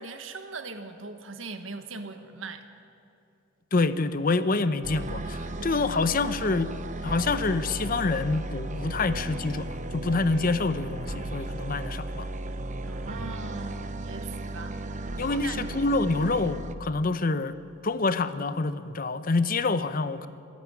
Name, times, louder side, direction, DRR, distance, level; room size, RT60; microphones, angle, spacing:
voice 1, 0.0-2.6 12.8-15.8, right 3 dB, 85° right, 8 dB, 1.4 m, -40 dB
voice 2, 3.7-6.7 7.0-12.3 15.2-17.5 17.8-20.3, left 3 dB, 45° left, 13 dB, 0.7 m, -27 dB
sound 1, 4.8-16.8, right 2 dB, 40° right, 0.8 m, -35 dB
25.0 x 10.5 x 9.7 m, 2.5 s
head